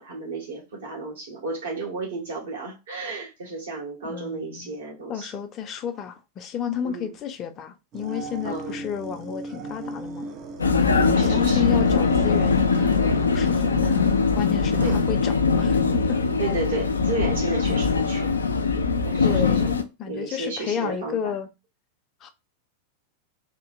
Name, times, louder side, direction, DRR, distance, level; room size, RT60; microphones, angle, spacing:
voice 1, 0.0-5.3 6.8-7.1 8.4-8.8 10.9-11.6 14.8-15.0 16.4-18.3 19.0-19.8 20.1-21.3, right 3 dB, 65° right, 1.9 m, -33 dB
voice 2, 4.1-4.7 5.1-10.3 11.1-15.8 16.1-16.2 19.2-21.5 22.2-22.3, left 8 dB, 30° left, 0.6 m, -32 dB
sound 1, 7.9-15.0, right 3 dB, 30° right, 0.7 m, -38 dB
Vehicle, 10.6-19.8, left 4 dB, 75° left, 0.4 m, -21 dB
3.7 x 2.8 x 2.5 m
figure-of-eight pair, 90°, 0 cm